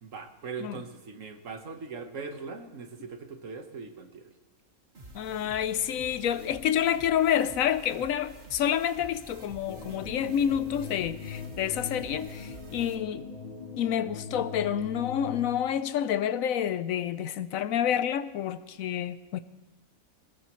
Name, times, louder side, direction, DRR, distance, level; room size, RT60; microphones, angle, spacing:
voice 1, 0.0-4.3, right 5 dB, 65° right, 1.6 m, -40 dB
sound 1, 4.9-12.9, right 2 dB, 45° right, 1.9 m, -49 dB
voice 2, 5.1-13.3 13.8-19.4, left 9 dB, 75° left, 1.0 m, -28 dB
sound 2, 9.7-15.6, left 5 dB, 30° left, 1.1 m, -40 dB
21.0 x 19.0 x 3.1 m
omnidirectional pair, 1.5 m